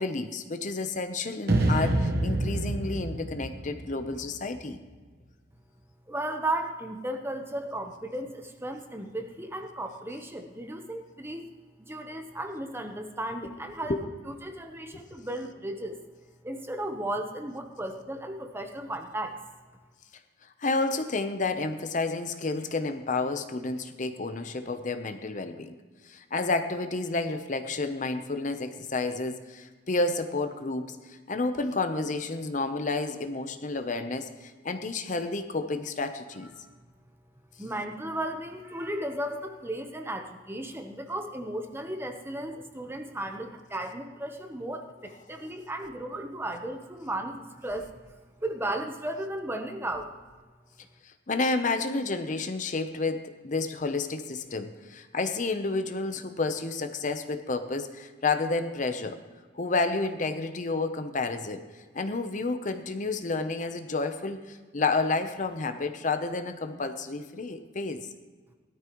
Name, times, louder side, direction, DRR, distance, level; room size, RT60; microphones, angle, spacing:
voice 1, 0.0-4.8 13.9-14.0 14.9-15.1 20.6-25.8 26.0-36.5 51.0-59.2 59.5-61.6 61.9-68.1, left 3 dB, 40° left, 8 dB, 0.7 m, -30 dB
sound 1, 1.5-4.7, right 1 dB, 55° right, 1.1 m, -27 dB
voice 2, 6.1-11.5 11.8-14.0 14.3-15.9 16.4-19.4 36.4-36.6 37.6-47.9 48.4-50.1, right 1 dB, 10° right, 5 dB, 0.9 m, -35 dB
17.5 x 13.0 x 3.1 m, 1.4 s
head